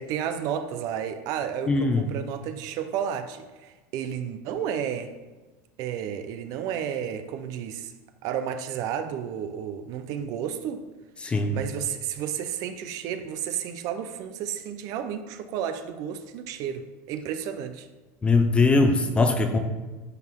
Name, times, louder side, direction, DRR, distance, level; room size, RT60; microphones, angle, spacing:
voice 1, 0.0-5.1 5.8-7.9 8.2-10.8 11.5-17.9, right 8 dB, 50° right, 9 dB, 0.6 m, -32 dB
voice 2, 1.7-2.0 11.2-11.6 18.2-19.6, left 3 dB, 15° left, 6 dB, 0.6 m, -21 dB
10.5 x 4.3 x 3.6 m, 1.2 s
supercardioid pair, 150°, 8 cm